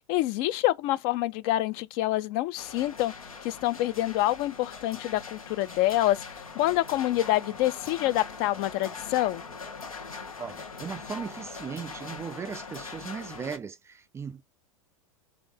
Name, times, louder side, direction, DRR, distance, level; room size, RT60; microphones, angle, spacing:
voice 1, 0.1-3.1 3.4-9.4, left 15 dB, 45° left, 0.5 m, -27 dB
sound 1, 2.6-13.6, left 4 dB, 85° left, 1.0 m, -42 dB
voice 2, 10.4-14.4, right 6 dB, 15° right, 0.4 m, -37 dB
3.7 x 3.3 x 3.5 m
figure-of-eight pair, 95°, 17 cm